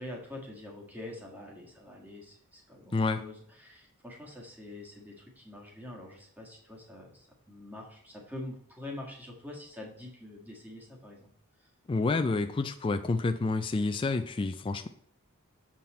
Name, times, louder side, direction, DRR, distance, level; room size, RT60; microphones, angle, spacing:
voice 1, 0.0-11.3 11.6-11.7, left 1 dB, 10° right, -1 dB, 1.7 m, -45 dB
voice 2, 2.9-3.2 11.9-14.9, left 3 dB, 25° left, 8 dB, 0.3 m, -29 dB
7.5 x 5.6 x 4.2 m, 0.65 s
head